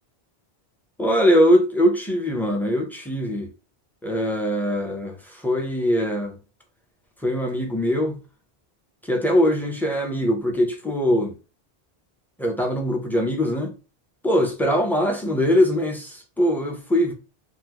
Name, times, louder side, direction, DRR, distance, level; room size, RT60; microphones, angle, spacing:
voice 1, 1.0-3.5 4.0-6.3 7.2-8.1 9.0-11.3 12.4-13.7 14.2-17.1, equal, ahead, 0.5 m, -22 dB
3.7 x 2.3 x 2.9 m
omnidirectional pair, 1.0 m